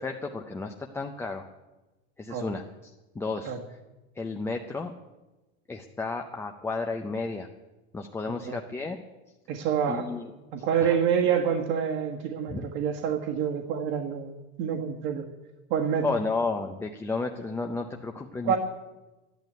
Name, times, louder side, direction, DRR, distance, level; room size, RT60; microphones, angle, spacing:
voice 1, 0.0-1.5 2.2-3.8 4.2-4.9 5.7-7.5 7.9-9.0 9.9-10.3 10.6-11.0 12.5-12.7 16.0-18.5, left 3 dB, 5° left, 3 dB, 0.5 m, -33 dB
voice 2, 9.5-10.1 10.5-14.3 14.6-15.2 15.7-16.1 18.4-18.6, right 8 dB, 55° right, 0 dB, 1.7 m, -27 dB
12.5 x 11.0 x 9.1 m, 1.1 s
supercardioid pair, 160°, 34 cm